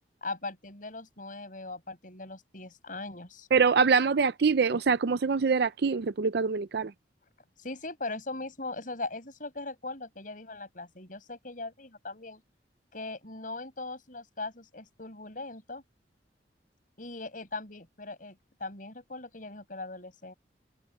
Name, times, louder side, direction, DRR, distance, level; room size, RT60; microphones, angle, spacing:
voice 1, 0.2-3.5 7.6-12.4 12.9-15.8 17.0-20.3, left 3 dB, 50° left, 7.8 m, -40 dB
voice 2, 3.5-6.9, right 5 dB, 65° right, 0.5 m, -24 dB
open air
head